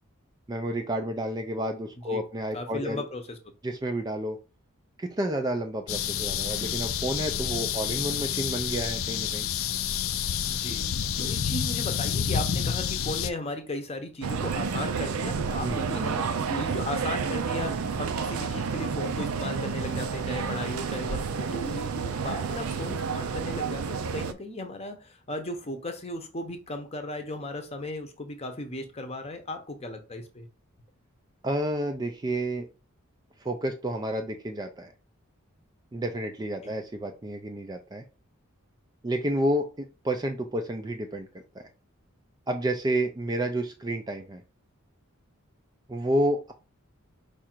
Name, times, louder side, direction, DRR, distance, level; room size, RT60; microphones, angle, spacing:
voice 1, 0.5-3.1 3.6-4.4 5.0-9.5 15.6-15.9 31.4-32.7 33.4-34.9 35.9-38.0 39.0-39.7 40.0-41.3 42.5-44.4 45.9-46.5, right 1 dB, 20° right, 5 dB, 0.3 m, -30 dB
voice 2, 2.5-3.4 10.4-10.9 11.2-30.5 36.6-36.7, left 1 dB, 30° left, 6 dB, 0.7 m, -36 dB
sound 1, 5.9-13.3, left 8 dB, 65° left, 0.4 m, -29 dB
sound 2, 14.2-24.3, right 5 dB, 80° right, 0.5 m, -30 dB
4.8 x 2.5 x 4.4 m, 0.32 s
head